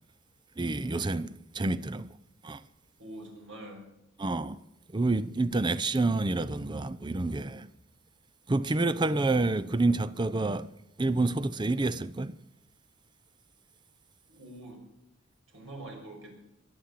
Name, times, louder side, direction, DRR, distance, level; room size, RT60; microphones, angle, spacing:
voice 1, 0.6-1.3 1.5-2.1 2.4-2.6 4.2-4.6 4.9-7.7 8.5-10.7 11.0-12.3, right 2 dB, 25° right, 0.5 m, -28 dB
voice 2, 3.0-3.9 14.3-14.8 15.5-16.3, right 1 dB, 80° right, 6.1 m, -44 dB
23.0 x 8.0 x 7.4 m
head